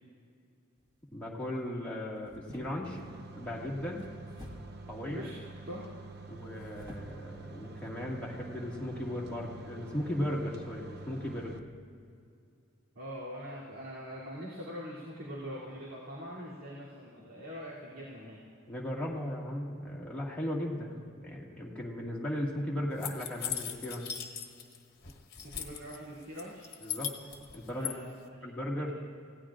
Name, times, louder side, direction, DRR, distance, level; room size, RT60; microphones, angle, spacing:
sound 1, 0.8-1.1 2.2-3.1 4.0-4.8 6.4-7.2 7.8-7.9 8.4-8.6, left 1 dB, 20° right, 1.7 m, -50 dB
voice 1, 1.1-4.1 4.9-5.3 6.3-11.6 18.7-24.1 26.8-27.1 27.5-28.0 28.4-28.9, left 1 dB, 5° left, -5 dB, 2.0 m, -37 dB
sound 2, 2.8-11.6, right 3 dB, 55° right, 0.7 m, -47 dB
voice 2, 12.9-18.4 25.4-26.7 27.7-28.1 28.8-28.9, equal, 90° right, -8 dB, 3.0 m, -43 dB
sound 3, 23.0-24.8 25.0-26.0 26.4-27.9, left 9 dB, 50° left, 1.3 m, -38 dB
28.5 x 17.0 x 2.5 m, 2.4 s
head